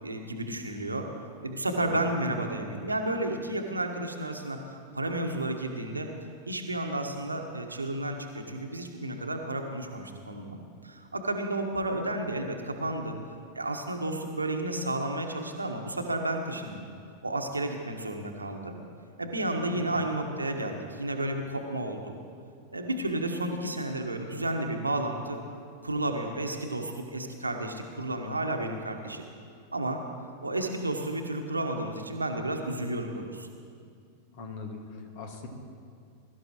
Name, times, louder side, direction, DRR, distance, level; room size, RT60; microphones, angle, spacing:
voice 1, 0.0-1.1 1.4-4.6 4.9-6.1 6.5-10.6 10.8-13.2 13.5-16.9 17.2-18.7 19.2-22.1 22.7-25.4 25.8-29.3 29.7-30.0 30.4-33.5, right 1 dB, 80° right, 4 dB, 1.3 m, -32 dB
voice 2, 1.8-2.2 19.7-20.1 34.3-35.5, left 3 dB, 50° left, 3 dB, 2.0 m, -41 dB
21.5 x 12.5 x 3.1 m, 2.3 s
figure-of-eight pair, 90°, 0 cm